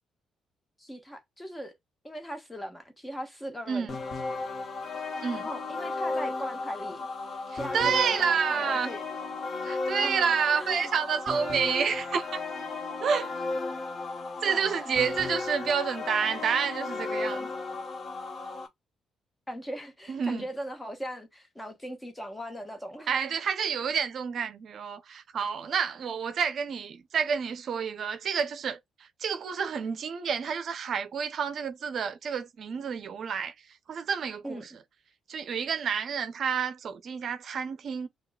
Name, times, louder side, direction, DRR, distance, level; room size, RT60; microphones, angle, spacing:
voice 1, 0.8-1.7 2.0-4.0 5.4-7.1 7.5-9.0 10.0-10.9 14.4-14.8 19.5-23.1 34.4-34.7, equal, 10° left, 1.2 m, -39 dB
sound 1, 3.9-18.7, left 3 dB, 45° left, 1.0 m, -34 dB
voice 2, 7.5-8.9 9.6-12.4 13.0-13.3 14.4-17.5 20.1-20.5 23.1-34.7 35.3-38.1, right 6 dB, 60° right, 0.5 m, -29 dB
6.8 x 2.4 x 2.3 m
cardioid pair, 90°, 0 cm